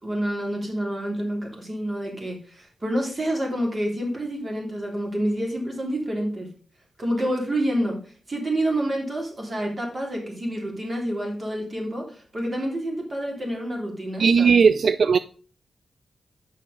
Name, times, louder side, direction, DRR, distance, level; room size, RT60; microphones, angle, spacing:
voice 1, 0.0-6.5 7.0-8.0 8.3-14.5, right 1 dB, 35° right, 3.3 m, -28 dB
voice 2, 14.2-15.2, right 5 dB, 70° right, 0.3 m, -17 dB
7.4 x 5.7 x 5.2 m
cardioid pair, 75°, 0 cm